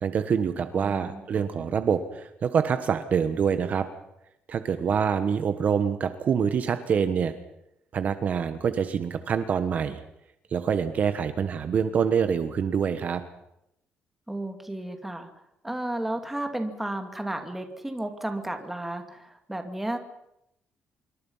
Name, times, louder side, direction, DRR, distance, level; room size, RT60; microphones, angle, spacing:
voice 1, 0.0-3.9 4.5-7.3 7.9-10.0 10.5-13.2, right 7 dB, 45° right, 10 dB, 1.3 m, -26 dB
voice 2, 0.7-1.4 14.3-15.3 15.6-20.0, right 1 dB, 5° right, 5 dB, 2.6 m, -33 dB
26.5 x 23.5 x 5.7 m, 0.82 s
cardioid pair, 150°, 4 cm